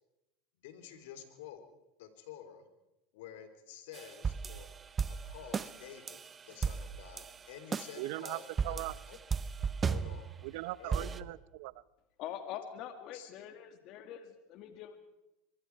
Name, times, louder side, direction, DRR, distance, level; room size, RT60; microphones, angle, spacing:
voice 1, 0.6-1.6 2.0-2.7 3.1-4.7 5.1-9.2 9.8-10.3 10.8-11.1 13.1-13.3, left 9 dB, 75° left, 8 dB, 3.4 m, -50 dB
sound 1, 3.9-6.3 6.6-7.3 7.7-10.5 10.9-11.2, right 6 dB, 25° right, 0.8 m, -34 dB
voice 2, 8.0-8.9 10.4-11.7, right 19 dB, 70° right, 19 dB, 0.7 m, -39 dB
voice 3, 12.2-15.0, left 10 dB, 55° left, 8 dB, 2.2 m, -44 dB
24.5 x 22.5 x 4.7 m, 0.93 s
supercardioid pair, 110°, 0 cm